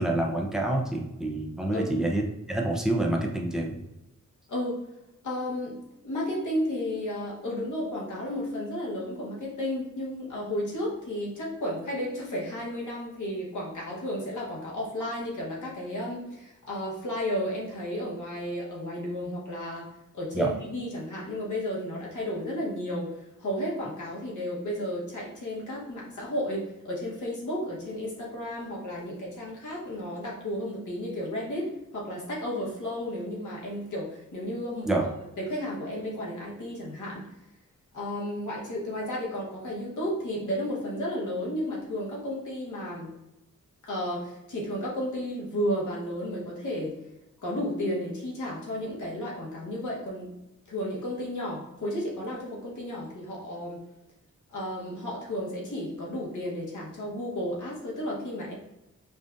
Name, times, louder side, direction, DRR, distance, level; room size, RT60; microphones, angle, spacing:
voice 1, 0.0-3.8 20.3-20.5 34.9-35.0, right 1 dB, ahead, -1 dB, 0.4 m, -27 dB
voice 2, 4.5-4.8 5.2-5.8 6.0-19.9 20.1-35.1 35.4-37.3 37.9-43.1 43.8-47.0 47.4-50.3 50.7-53.8 54.5-58.5, left 1 dB, 75° left, -4 dB, 1.2 m, -33 dB
5.1 x 2.4 x 2.5 m, 0.91 s
wide cardioid pair, 180°, 30 cm